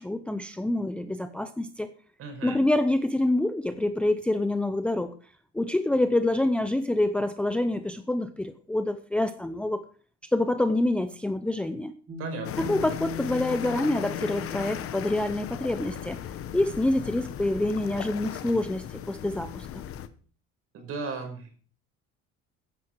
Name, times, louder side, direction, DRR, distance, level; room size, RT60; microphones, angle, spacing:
voice 1, 0.0-1.9 2.4-5.1 5.5-9.8 10.2-11.9 12.7-16.2 16.5-19.8, left 1 dB, 5° left, 9 dB, 0.6 m, -26 dB
voice 2, 2.2-2.6 12.2-12.7 20.7-21.5, right 4 dB, 50° right, 5 dB, 5.3 m, -36 dB
sound 1, 12.1-18.8, left 8 dB, 25° right, 5.1 m, -42 dB
sound 2, 12.4-20.1, left 10 dB, 45° left, 1.1 m, -37 dB
15.0 x 10.5 x 4.7 m, 0.41 s
cardioid pair, 160°, 31 cm